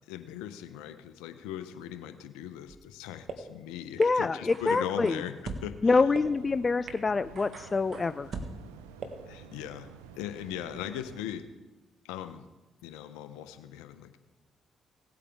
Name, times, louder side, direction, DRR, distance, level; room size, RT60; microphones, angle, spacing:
voice 1, 0.1-5.3 5.6-5.8 9.3-9.9 10.2-11.5 12.0-12.4 12.8-14.2, left 11 dB, 85° left, 10 dB, 0.7 m, -39 dB
sound 1, 2.7-2.8 3.3-3.4 4.0-4.1 4.5-5.6 6.1-6.2 6.9-7.0 7.4-8.5 9.0-9.1, right 4 dB, 60° right, 1.5 m, -40 dB
voice 2, 4.0-5.2 5.8-8.4, left 4 dB, 35° left, 13 dB, 0.4 m, -26 dB
sound 2, 5.9-11.2, right 7 dB, 90° right, 0.5 m, -50 dB
17.5 x 8.4 x 3.5 m, 1.1 s
hypercardioid pair, 45°, 0 cm